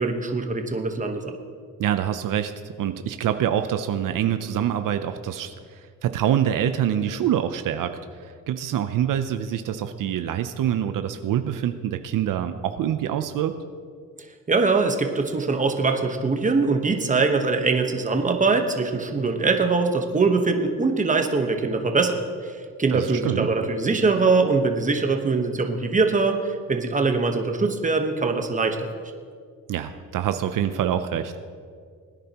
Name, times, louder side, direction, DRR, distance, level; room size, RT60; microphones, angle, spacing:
voice 1, 0.0-1.3 14.5-28.8, right 4 dB, 25° right, 5 dB, 1.1 m, -22 dB
voice 2, 1.8-13.6 22.9-23.5 29.7-31.4, right 10 dB, 75° right, 9 dB, 0.6 m, -26 dB
20.0 x 10.0 x 2.9 m, 2.1 s
cardioid pair, 100°, 33 cm